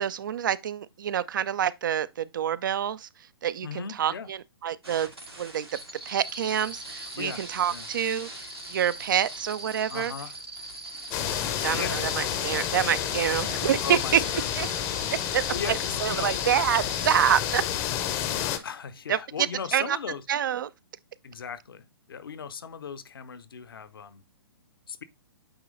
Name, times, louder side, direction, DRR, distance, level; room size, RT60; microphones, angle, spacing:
voice 1, 0.0-3.1 3.4-5.1 5.4-5.7 6.1-10.1 11.6-14.2 14.6-14.7 15.3-17.7 19.1-19.2 19.7-20.0 20.3-20.7, right 9 dB, 55° right, 0.4 m, -27 dB
voice 2, 3.6-4.3 7.1-7.4 7.7-7.9 9.9-10.3 11.7-12.0 13.8-14.9 15.5-16.4 18.6-20.2 21.2-24.2 24.9-25.0, left 6 dB, 65° left, 0.8 m, -37 dB
sound 1, 4.8-17.2, right 1 dB, 90° right, 2.0 m, -41 dB
sound 2, 11.1-18.6, left 10 dB, 25° left, 0.6 m, -30 dB
8.8 x 3.0 x 3.8 m
figure-of-eight pair, 120°, 13 cm